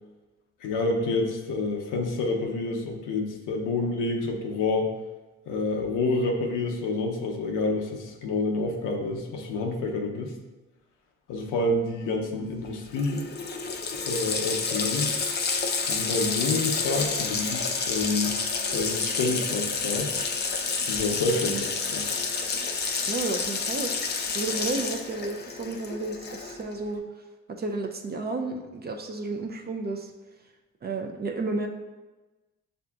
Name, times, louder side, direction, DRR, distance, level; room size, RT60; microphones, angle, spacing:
voice 1, 0.6-4.9 5.5-10.3 11.3-13.3 13.9-15.1 15.9-18.4 18.7-20.1 20.9-22.1, left 3 dB, 85° left, 1 dB, 0.6 m, -28 dB
Water tap faucet, 12.7-12.8 13.0-26.7, left 4 dB, 35° left, 0.5 m, -29 dB
voice 2, 23.1-23.9 24.3-27.2 27.5-30.1 30.8-31.7, right 3 dB, 35° right, 3 dB, 0.4 m, -32 dB
6.5 x 2.5 x 2.3 m, 1.1 s
cardioid pair, 90°, 30 cm